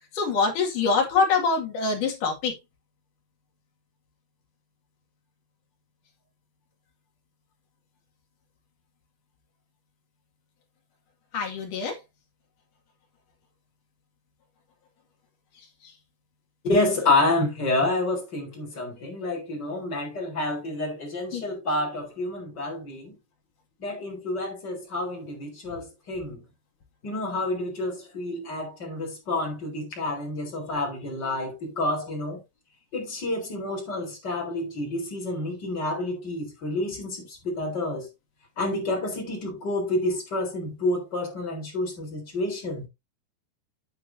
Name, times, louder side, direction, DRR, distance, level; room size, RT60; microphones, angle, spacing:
voice 1, 0.1-2.5 11.3-12.0 15.8-15.9 21.3-21.4, left 4 dB, 55° left, 3.5 m, -24 dB
voice 2, 16.6-23.2 23.8-26.4 27.0-32.4 32.9-38.1 38.6-42.9, left 2 dB, 25° left, 4.1 m, -29 dB
9.3 x 9.2 x 2.7 m
omnidirectional pair, 4.6 m